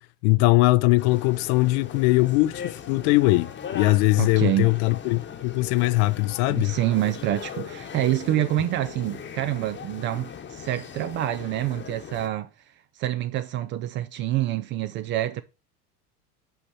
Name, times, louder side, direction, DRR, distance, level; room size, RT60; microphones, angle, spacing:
voice 1, 0.2-6.7, left 21 dB, 45° left, 0.5 m, -21 dB
sound 1, 1.0-12.3, left 7 dB, 25° left, 1.0 m, -39 dB
voice 2, 4.2-4.7 6.5-12.5 13.0-15.4, right 13 dB, 30° right, 0.3 m, -27 dB
5.7 x 5.3 x 5.6 m
hypercardioid pair, 80°, 46 cm